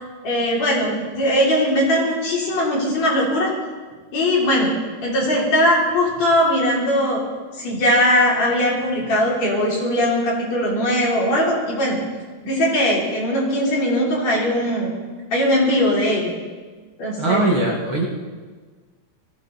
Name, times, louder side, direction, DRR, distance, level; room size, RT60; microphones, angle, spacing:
voice 1, 0.2-3.5 4.1-4.7 5.0-7.2 7.6-12.0 12.4-14.9 15.3-16.3 17.0-17.4, equal, 55° left, -5 dB, 5.1 m, -20 dB
voice 2, 17.2-18.1, right 2 dB, 45° right, -2 dB, 2.6 m, -20 dB
20.5 x 15.5 x 4.2 m, 1.4 s
omnidirectional pair, 3.6 m